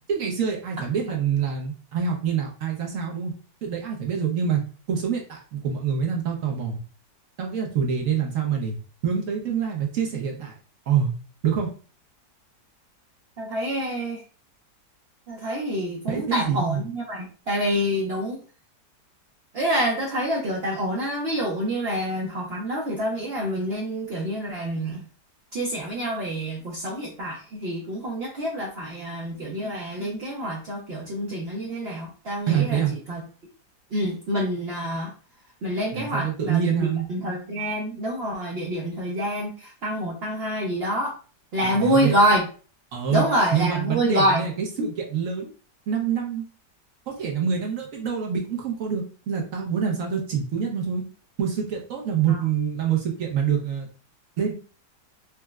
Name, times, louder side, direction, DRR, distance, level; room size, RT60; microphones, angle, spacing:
voice 1, 0.1-3.3 3.6-4.6 4.9-6.8 7.4-8.8 9.0-10.5 10.9-11.1 11.4-11.7 16.1-16.8 32.5-32.9 35.9-37.1 41.6-42.2 42.9-45.5 45.9-46.4 47.1-51.0 51.4-53.9 54.4-54.5, right 7 dB, 65° right, 0 dB, 0.8 m, -26 dB
voice 2, 13.4-14.2 15.3-18.4 19.5-25.0 25.5-33.2 33.9-35.1 35.6-41.1 41.5-42.4 43.1-44.4 52.3-52.4, equal, 85° right, -2 dB, 0.5 m, -27 dB
4.4 x 2.0 x 2.2 m, 0.39 s
omnidirectional pair, 1.8 m